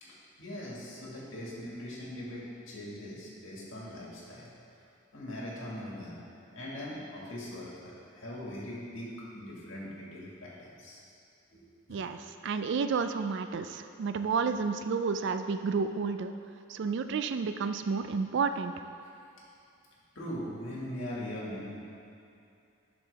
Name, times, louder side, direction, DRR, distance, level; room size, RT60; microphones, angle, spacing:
voice 1, 0.0-4.5 5.1-6.2 6.5-11.0 11.5-11.6 11.9-12.3 20.2-21.8, left 1 dB, 60° left, -5 dB, 1.9 m, -41 dB
voice 2, 11.9-16.3 16.7-18.7, right 5 dB, 55° right, 9 dB, 0.3 m, -31 dB
10.5 x 6.1 x 3.5 m, 2.6 s
head